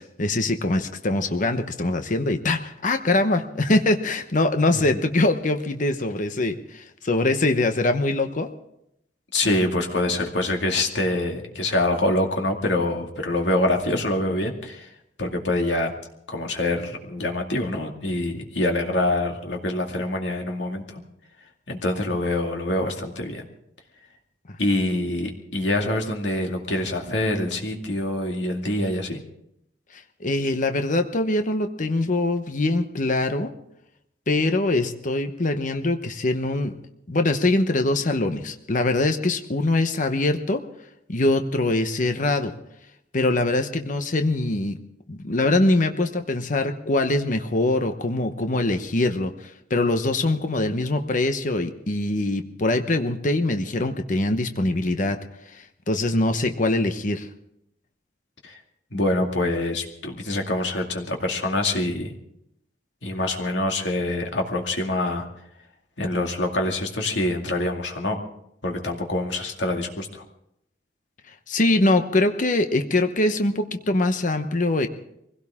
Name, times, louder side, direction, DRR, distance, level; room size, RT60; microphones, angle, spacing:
voice 1, 0.0-8.5 30.2-33.5 34.3-36.7 37.1-40.6 41.1-42.5 43.1-44.8 45.1-55.2 55.5-57.3 71.5-74.9, left 2 dB, 45° left, 7 dB, 0.9 m, -23 dB
voice 2, 9.3-14.9 15.2-15.9 16.3-21.0 21.7-23.4 24.6-29.2 58.4-58.6 58.9-62.1 63.0-65.3 66.0-68.2 68.6-70.2, left 1 dB, 80° left, 2 dB, 2.3 m, -25 dB
23.5 x 16.5 x 3.6 m, 0.76 s
head